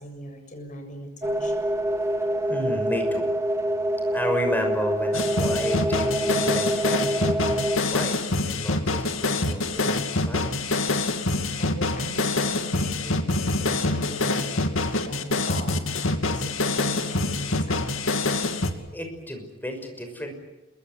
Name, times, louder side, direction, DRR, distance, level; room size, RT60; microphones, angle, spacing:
voice 1, 0.0-1.6 11.5-18.1, equal, 40° left, 5 dB, 7.1 m, -40 dB
sound 1, 1.2-7.8, right 1 dB, 15° right, 2.5 m, -26 dB
voice 2, 2.5-3.3 4.1-8.2 8.5-9.0 9.3-10.5 18.9-20.3, left 1 dB, 10° left, 5 dB, 6.0 m, -32 dB
sound 2, 5.1-18.7, left 2 dB, 70° left, 2.6 m, -25 dB
27.0 x 23.5 x 8.4 m, 1.0 s
head